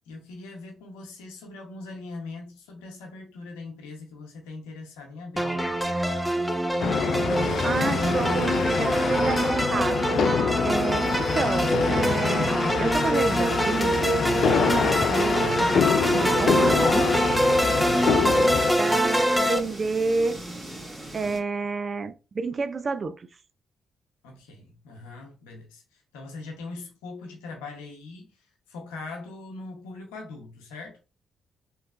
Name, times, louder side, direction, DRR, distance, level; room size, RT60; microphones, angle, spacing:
voice 1, 0.1-5.6 24.2-28.4 28.7-31.0, left 3 dB, 90° left, 0.8 m, -41 dB
sound 1, 5.4-19.6, equal, 5° right, 0.7 m, -24 dB
sound 2, 6.8-18.7, left 6 dB, 65° left, 0.4 m, -26 dB
voice 2, 7.6-10.0 10.6-12.5 12.8-14.0 14.6-15.6 16.2-17.1 18.8-20.4 21.1-23.3, right 4 dB, 50° right, 0.4 m, -29 dB
sound 3, 13.2-21.4, right 1 dB, 25° right, 1.7 m, -40 dB
3.1 x 3.1 x 2.4 m
hypercardioid pair, 45°, 0 cm